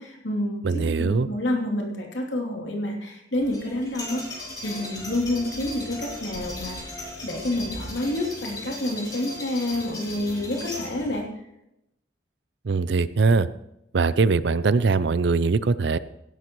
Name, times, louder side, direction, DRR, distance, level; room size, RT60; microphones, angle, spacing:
voice 1, 0.0-11.2, left 1 dB, 75° left, 0 dB, 3.0 m, -29 dB
voice 2, 0.6-1.3 12.6-13.5 13.9-16.0, right 4 dB, 70° right, 16 dB, 0.5 m, -21 dB
sound 1, 3.4-11.2, left 1 dB, 20° left, 2.6 m, -37 dB
16.5 x 11.5 x 3.1 m, 0.85 s
head